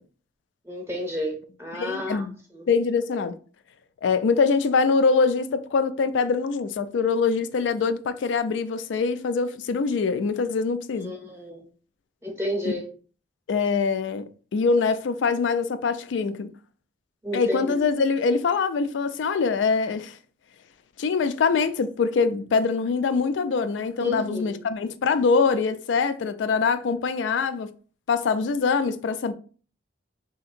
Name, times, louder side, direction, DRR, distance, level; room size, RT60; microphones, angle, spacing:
voice 1, 0.6-2.7 11.0-11.6 12.2-12.9 17.2-17.8 24.0-24.6, left 1 dB, 15° right, 0.6 m, -31 dB
voice 2, 1.8-2.3 2.7-3.4 4.0-11.1 13.5-16.5 17.3-20.1 21.0-27.7 28.1-29.3, left 5 dB, 85° left, 0.3 m, -24 dB
3.4 x 2.8 x 2.4 m
head